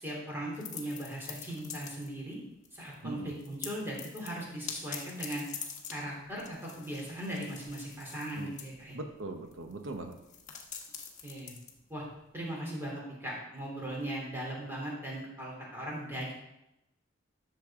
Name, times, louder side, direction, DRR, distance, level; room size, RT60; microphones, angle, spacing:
voice 1, 0.0-2.4 2.7-5.4 5.9-9.0 11.2-11.5 11.9-12.0 12.3-16.3, right 1 dB, 10° right, -4 dB, 3.2 m, -38 dB
sound 1, 0.5-2.3 2.6-3.0 3.3-12.4, left 7 dB, 40° left, 1.4 m, -45 dB
voice 2, 3.0-3.3 8.4-8.5 8.9-10.2, right 2 dB, 85° right, 4 dB, 1.0 m, -40 dB
12.0 x 6.8 x 3.7 m, 0.88 s
head